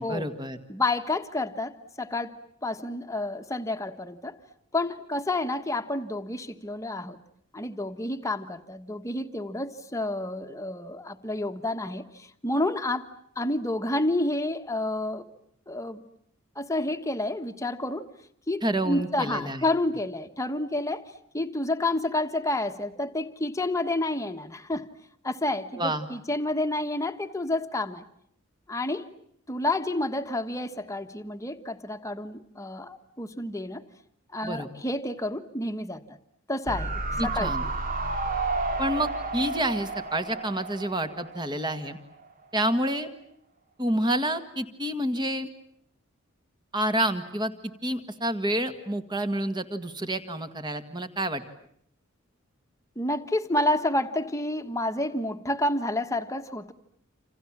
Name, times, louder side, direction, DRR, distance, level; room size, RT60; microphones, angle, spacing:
voice 1, 0.0-0.6 18.6-19.6 25.8-26.1 34.4-34.7 37.2-37.6 38.8-42.0 42.5-43.1 43.8-45.5 46.7-51.4, right 1 dB, 20° right, 9 dB, 1.9 m, -28 dB
voice 2, 0.7-2.4 2.6-4.4 4.7-7.2 7.5-13.1 13.3-15.2 15.7-16.0 16.5-18.0 18.5-24.9 25.2-28.0 28.7-29.1 29.5-33.8 34.3-36.0 36.5-36.9 37.2-37.5 53.0-56.7, left 2 dB, 15° left, 7 dB, 1.4 m, -29 dB
sound 1, 36.7-41.9 42.2-42.3, right 3 dB, 45° right, 2.0 m, -31 dB
29.0 x 27.5 x 7.4 m, 0.68 s
head